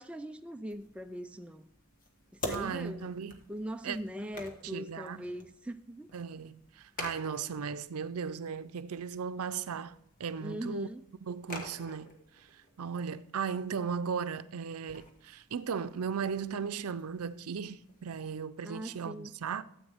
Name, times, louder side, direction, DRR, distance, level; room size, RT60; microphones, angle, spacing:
voice 1, 0.0-1.7 2.4-3.1 3.5-6.1 10.4-11.0 18.6-19.3, equal, 5° right, 0.3 m, -40 dB
sound 1, 0.7-18.3, left 1 dB, 40° left, 1.4 m, -48 dB
voice 2, 2.5-3.4 3.8-4.0 4.6-5.2 6.1-10.9 11.2-19.6, right 6 dB, 90° right, 0.5 m, -37 dB
13.5 x 8.1 x 3.5 m
head